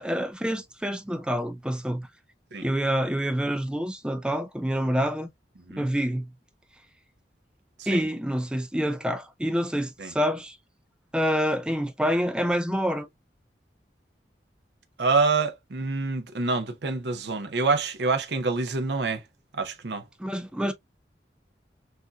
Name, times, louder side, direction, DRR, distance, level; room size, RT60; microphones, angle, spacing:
voice 1, 0.0-2.1 2.6-5.3 5.7-6.3 7.9-10.6 11.1-13.1 20.2-20.7, equal, 5° right, 0.5 m, -27 dB
voice 2, 15.0-19.2 19.6-20.0, right 4 dB, 75° right, 0.7 m, -26 dB
6.4 x 2.6 x 2.3 m
head